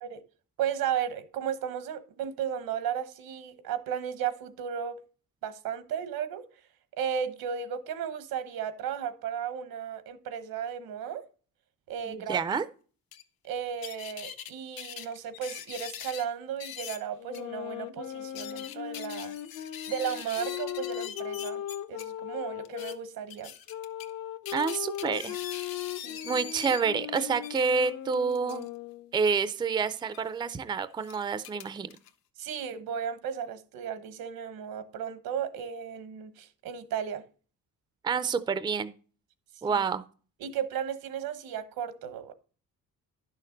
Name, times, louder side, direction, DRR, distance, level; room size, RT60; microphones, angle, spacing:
voice 1, 0.6-5.0 5.4-6.5 6.9-11.2 11.9-12.4 13.4-19.3 19.9-21.6 21.9-23.5 26.0-26.4 32.4-37.2 39.6-39.8 40.4-42.3, right 8 dB, 90° right, 1.3 m, -34 dB
voice 2, 12.1-12.7 24.5-25.4 26.3-28.7 29.1-31.9 38.0-38.9 39.6-40.0, right 5 dB, 15° right, 0.4 m, -28 dB
sound 1, 13.1-13.2 13.8-14.5 14.8-16.3 16.6-17.0 17.3-17.4 18.1-22.0 22.6-22.9 23.3-24.1 24.5-26.8 27.1-28.7 30.0-30.2 31.0-32.1, left 10 dB, 85° left, 1.1 m, -42 dB
sound 2, 17.2-23.0 23.7-29.2, left 11 dB, 55° left, 0.7 m, -38 dB
11.0 x 6.6 x 3.9 m
cardioid pair, 165°, 35 cm